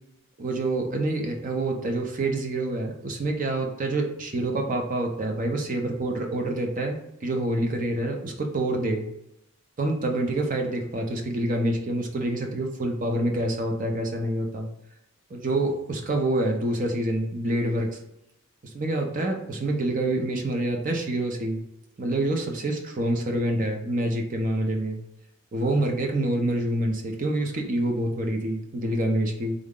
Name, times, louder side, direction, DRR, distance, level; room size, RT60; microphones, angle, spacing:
voice 1, 0.4-9.1 9.8-14.7 15.3-18.0 18.6-21.6 22.0-25.0 25.5-29.5, right 1 dB, 35° right, 3 dB, 0.5 m, -27 dB
3.6 x 2.1 x 3.6 m, 0.81 s
head